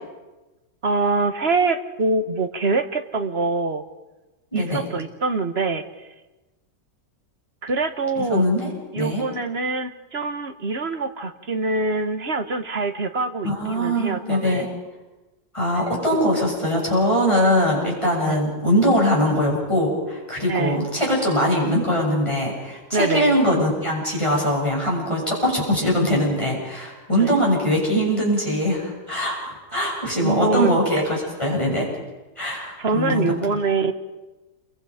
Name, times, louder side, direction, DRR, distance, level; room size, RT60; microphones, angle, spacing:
voice 1, 0.8-3.8 4.5-5.8 7.6-8.5 8.9-14.6 18.2-18.3 20.5-20.8 22.9-23.3 27.2-27.3 30.2-30.7 32.8-33.9, right 3 dB, 40° right, 8 dB, 1.4 m, -24 dB
voice 2, 4.5-4.8 8.2-8.7 9.0-9.2 13.4-14.7 15.5-31.9 32.4-33.3, equal, 15° left, -3 dB, 7.5 m, -22 dB
29.0 x 24.0 x 5.1 m, 1.1 s
omnidirectional pair, 1.9 m